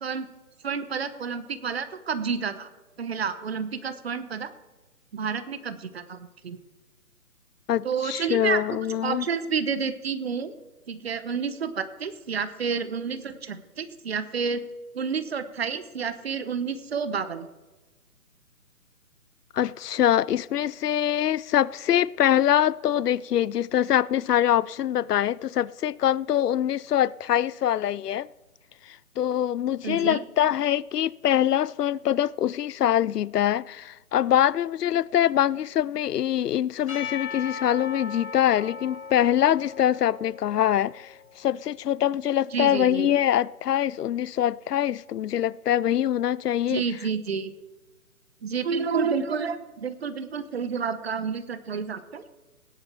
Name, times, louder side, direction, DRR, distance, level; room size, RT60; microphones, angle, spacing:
voice 1, 0.6-2.7 3.0-4.5 5.1-6.6 7.8-8.6 8.9-10.5 10.9-14.6 14.9-17.5 29.8-30.2 42.5-43.1 46.7-47.5 48.4-52.2, right 6 dB, 40° right, 1.0 m, -30 dB
voice 2, 7.7-9.3 19.5-28.3 28.9-46.8, left 11 dB, 85° left, 0.6 m, -24 dB
Percussion / Church bell, 36.9-41.1, left 5 dB, 65° left, 3.9 m, -38 dB
18.0 x 10.0 x 4.4 m
hypercardioid pair, 160°, 46 cm